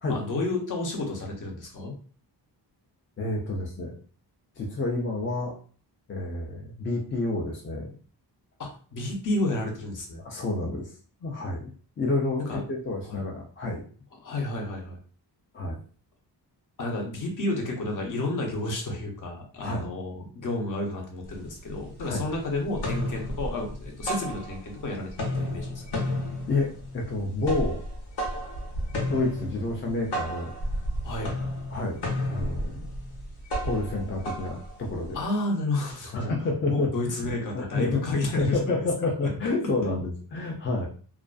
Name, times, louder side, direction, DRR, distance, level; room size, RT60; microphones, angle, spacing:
voice 1, 0.1-1.9 8.6-10.2 12.4-12.6 13.1-13.2 14.2-15.0 16.8-25.1 25.3-25.8 31.0-31.4 35.1-36.3 36.7-38.8, left 2 dB, 50° left, 1 dB, 0.7 m, -31 dB
voice 2, 3.2-4.0 4.6-5.6 6.1-7.9 10.2-10.9 11.2-13.8 15.5-15.8 19.6-19.9 22.0-22.2 26.5-27.8 29.1-30.5 31.7-32.9 33.6-35.2 36.1-40.9, left 2 dB, 30° left, 0 dB, 0.4 m, -29 dB
sound 1, 21.3-21.4 21.7-22.3 22.6-24.8 25.1-35.2, left 1 dB, 80° left, 0.9 m, -32 dB
2.4 x 2.3 x 2.4 m, 0.42 s
wide cardioid pair, 155°, 41 cm